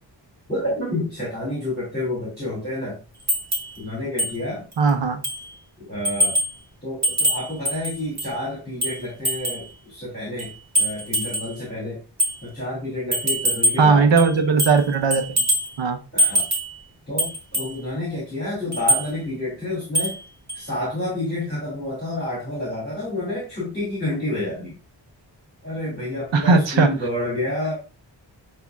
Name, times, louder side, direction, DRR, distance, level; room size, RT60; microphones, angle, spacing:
voice 1, 0.5-3.0 3.8-4.7 5.8-6.4 6.8-12.0 12.4-14.1 16.1-16.5 17.1-20.2 20.5-24.7 25.6-27.7, left 1 dB, 20° left, -6 dB, 2.2 m, -29 dB
sound 1, 3.3-3.7 4.2-4.3 4.7-4.8 5.2-5.5 6.0-6.6 7.0-8.4 8.8-9.7 10.4-11.5 12.2-12.4 13.1-13.9 14.2-14.9 15.1-15.7 16.2-16.7 17.2-17.7 18.7-19.1 19.9-20.2 20.5-20.6, right 1 dB, 40° right, 1.3 m, -23 dB
voice 2, 4.8-5.2 13.8-15.4 15.8-16.0 26.3-26.9, right 4 dB, 85° right, 7 dB, 0.9 m, -18 dB
8.3 x 2.8 x 2.3 m, 0.32 s
wide cardioid pair, 145°, 44 cm